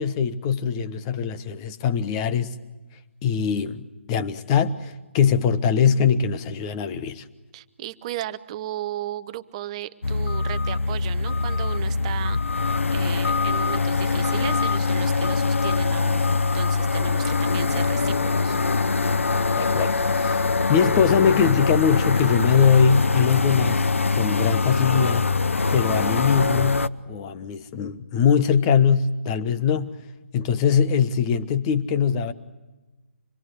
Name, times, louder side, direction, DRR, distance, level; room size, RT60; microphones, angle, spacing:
voice 1, 0.0-2.5 3.2-7.2 19.5-20.4 20.7-23.9 24.1-25.3 25.7-29.9 30.3-32.3, left 7 dB, 25° left, 1.2 m, -22 dB
voice 2, 7.5-12.4 12.9-16.2 16.5-18.6, right 12 dB, 30° right, 1.0 m, -35 dB
sound 1, 10.0-26.9, left 4 dB, 80° left, 0.9 m, -23 dB
sound 2, 15.5-25.7 25.9-26.0, right 6 dB, 5° right, 2.5 m, -47 dB
26.0 x 21.5 x 8.1 m
figure-of-eight pair, 145°, 7 cm